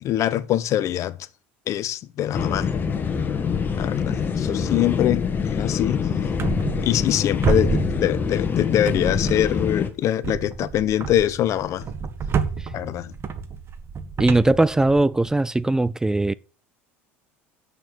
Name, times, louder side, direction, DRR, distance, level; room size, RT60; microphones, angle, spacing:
voice 1, 0.0-1.2 1.7-2.7 3.8-6.1 6.8-11.9 12.7-13.1, left 12 dB, 50° left, 0.9 m, -24 dB
sound 1, 2.3-9.9, left 6 dB, 30° left, 2.1 m, -25 dB
sound 2, 6.4-7.2 7.4-8.5 8.9-9.7 10.2-15.3, right 5 dB, 40° right, 1.8 m, -28 dB
voice 2, 14.2-16.3, right 2 dB, 10° right, 0.5 m, -19 dB
8.9 x 6.9 x 7.5 m
hypercardioid pair, 80°, 7 cm